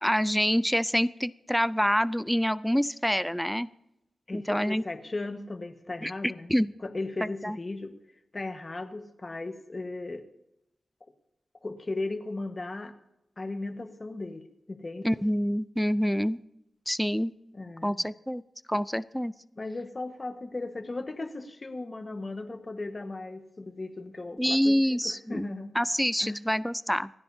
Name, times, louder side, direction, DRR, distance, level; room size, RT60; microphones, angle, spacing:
voice 1, 0.0-3.7 4.3-4.8 6.0-6.1 6.5-6.7 7.4-7.6 15.0-16.4 16.9-17.3 17.8-18.4 18.7-19.3 24.4-25.5 25.7-27.1, equal, ahead, 17 dB, 0.4 m, -26 dB
voice 2, 4.3-6.5 6.8-7.9 8.3-10.2 11.6-12.9 13.4-15.1 17.5-18.0 19.6-25.7 26.2-26.4, left 2 dB, 30° left, 8 dB, 1.4 m, -36 dB
28.5 x 10.0 x 2.8 m, 0.85 s
wide cardioid pair, 120°, 0 cm